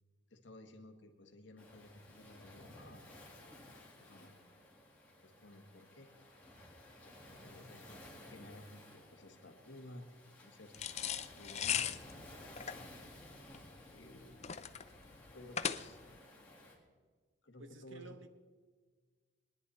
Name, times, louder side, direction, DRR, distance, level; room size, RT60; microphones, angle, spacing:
voice 1, 0.3-3.0 4.0-4.3 5.2-6.1 7.4-8.0 8.3-10.1 10.4-10.8 11.3-12.0 13.9-14.7 15.3-16.0 17.4-18.2, left 1 dB, 60° left, 1.6 m, -55 dB
Waves surf, 1.6-16.8, left 1 dB, 10° left, 2.4 m, -56 dB
sound 1, 10.7-16.2, left 9 dB, 35° left, 0.5 m, -39 dB
voice 2, 17.6-18.3, right 3 dB, 70° right, 1.1 m, -53 dB
22.0 x 10.5 x 4.2 m
head